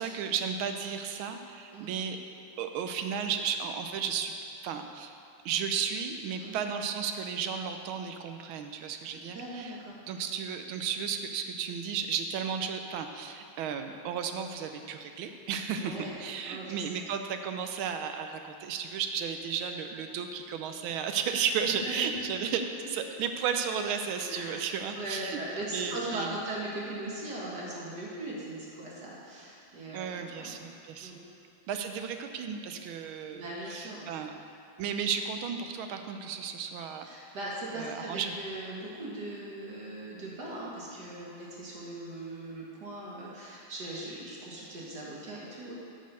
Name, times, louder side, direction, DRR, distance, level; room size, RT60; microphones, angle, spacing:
voice 1, 0.0-2.2 2.6-4.3 4.6-5.1 5.4-9.8 10.1-25.4 25.7-26.3 29.9-31.1 31.7-34.3 34.8-37.1 37.7-38.3, right 7 dB, 85° right, 6 dB, 1.5 m, -34 dB
voice 2, 9.1-10.0 15.8-17.1 21.6-22.1 22.8-22.9 24.3-30.6 31.0-31.2 33.3-34.1 37.0-45.7, right 1 dB, 55° right, -5 dB, 1.9 m, -39 dB
9.0 x 5.3 x 6.7 m, 2.5 s
omnidirectional pair, 2.3 m